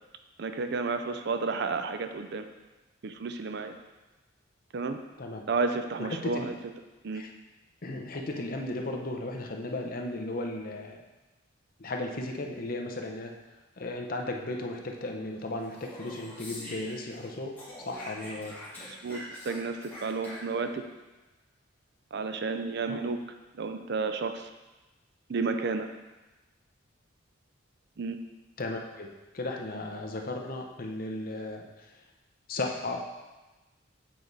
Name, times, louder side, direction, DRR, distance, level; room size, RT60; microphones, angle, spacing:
voice 1, 0.4-2.5 3.0-3.7 4.7-5.0 5.5-6.5 7.0-7.2 19.0-20.8 22.1-23.2 23.6-24.4 25.3-25.9 28.0-28.2, right 4 dB, 55° right, 7 dB, 0.5 m, -31 dB
voice 2, 6.0-6.6 7.1-7.3 7.8-11.0 11.8-13.3 13.8-17.6 17.8-18.6 22.9-23.0 28.6-31.9 32.5-33.0, left 2 dB, 45° left, 2 dB, 0.7 m, -35 dB
Speech, 15.6-17.3 17.6-20.7, left 1 dB, 10° left, 1.8 m, -44 dB
7.5 x 4.6 x 4.0 m, 1.1 s
head